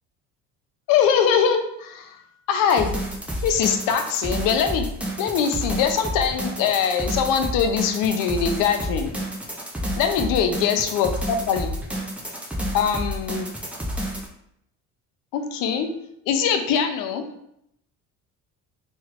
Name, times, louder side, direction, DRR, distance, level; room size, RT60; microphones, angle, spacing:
voice 1, 0.9-2.2 2.5-2.9 3.4-4.9 5.2-9.1 10.0-11.7 12.7-13.5 15.3-15.9 16.3-17.2, left 7 dB, 80° left, 7 dB, 0.6 m, -22 dB
sound 1, 2.7-14.3, equal, 5° right, 0.6 m, -30 dB
3.1 x 3.1 x 2.4 m, 0.75 s
cardioid pair, 100°, 32 cm